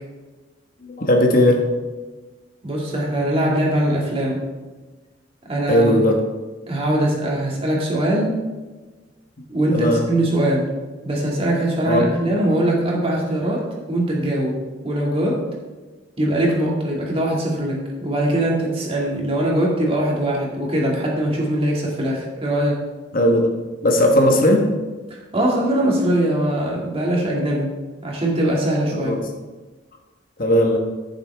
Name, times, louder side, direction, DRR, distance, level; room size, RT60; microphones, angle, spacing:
voice 1, 0.8-1.7 5.7-6.2 9.7-10.0 11.8-12.0 23.1-23.5 23.8-24.7 28.9-29.2 30.4-30.8, left 1 dB, 50° left, 2 dB, 1.3 m, -17 dB
voice 2, 2.6-4.4 5.4-5.9 6.7-8.3 9.5-10.6 11.0-13.6 13.9-14.6 14.8-15.4 16.2-22.8 25.3-27.7 28.0-29.2, right 1 dB, 30° right, -3 dB, 2.3 m, -21 dB
14.5 x 6.9 x 3.5 m, 1.2 s
head